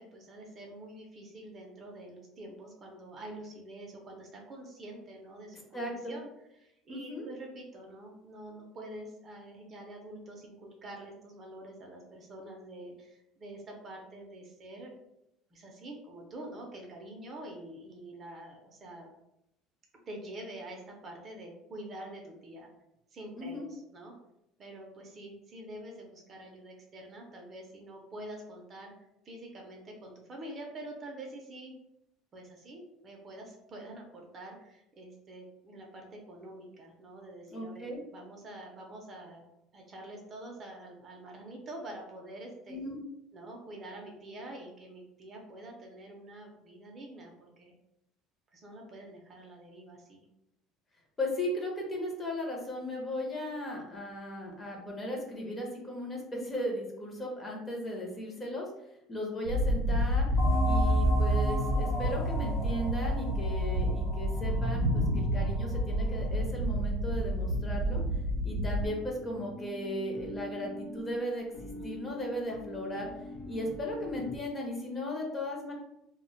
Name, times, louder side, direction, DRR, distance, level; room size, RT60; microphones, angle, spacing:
voice 1, 0.0-6.3 6.6-14.9 15.5-19.1 20.1-22.7 23.1-24.1 24.6-28.9 29.2-31.7 32.3-39.4 39.7-42.8 43.3-47.7 48.5-50.2 71.8-72.2, right 1 dB, 30° right, 1 dB, 0.5 m, -46 dB
voice 2, 5.7-6.2 6.9-7.3 23.4-23.6 37.5-38.0 42.7-43.0 51.2-58.7 59.1-60.3 60.6-68.0 68.4-73.1 73.5-75.7, left 1 dB, 20° left, -1 dB, 0.6 m, -36 dB
sound 1, 59.4-68.9, equal, 85° right, 0.4 m, -30 dB
sound 2, 60.4-65.6, equal, 50° left, 0.8 m, -30 dB
sound 3, 68.7-74.4, left 1 dB, 90° left, 0.5 m, -44 dB
2.1 x 2.1 x 3.8 m, 0.83 s
cardioid pair, 160°, 0 cm